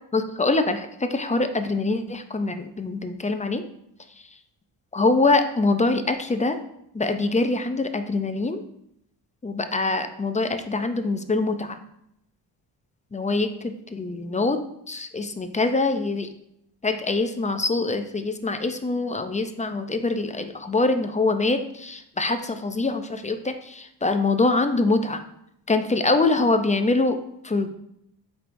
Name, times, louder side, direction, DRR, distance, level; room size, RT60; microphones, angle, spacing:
voice 1, 0.1-3.6 4.9-6.6 6.9-8.6 9.4-11.8 13.1-14.6 14.9-16.3 16.8-25.2 25.7-27.2 27.4-27.7, left 3 dB, 15° left, 8 dB, 0.5 m, -24 dB
7.7 x 4.7 x 2.6 m, 0.76 s
cardioid pair, 85°, 44 cm